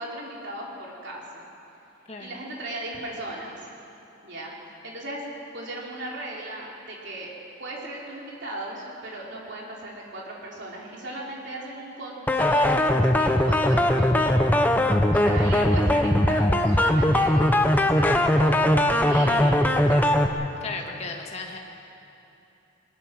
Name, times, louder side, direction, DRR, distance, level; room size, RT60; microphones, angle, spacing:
voice 1, 0.0-1.5 2.2-3.7 4.2-4.5 4.8-5.2 5.5-7.3 7.6-14.6 15.1-20.3, right 1 dB, 55° right, -3 dB, 4.0 m, -37 dB
voice 2, 2.1-2.4 20.6-21.6, left 4 dB, 30° left, 2 dB, 1.9 m, -35 dB
sound 1, 12.3-20.3, left 1 dB, 10° left, 0.9 m, -20 dB
22.5 x 21.0 x 6.2 m, 2.8 s
head